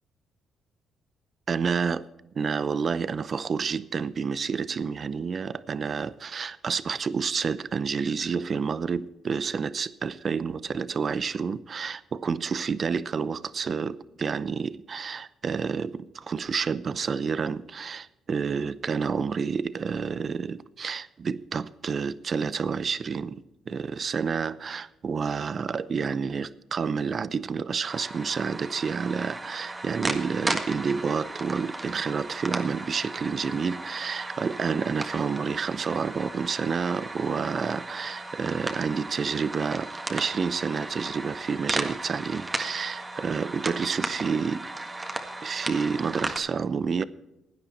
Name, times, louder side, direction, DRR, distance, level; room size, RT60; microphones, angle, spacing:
voice 1, 1.5-2.1 2.3-44.7 45.4-47.0, right 5 dB, 45° right, 0.6 m, -29 dB
sound 1, 27.8-46.4, right 2 dB, 20° right, 1.6 m, -35 dB
16.5 x 9.8 x 4.3 m
cardioid pair, 90°, 0 cm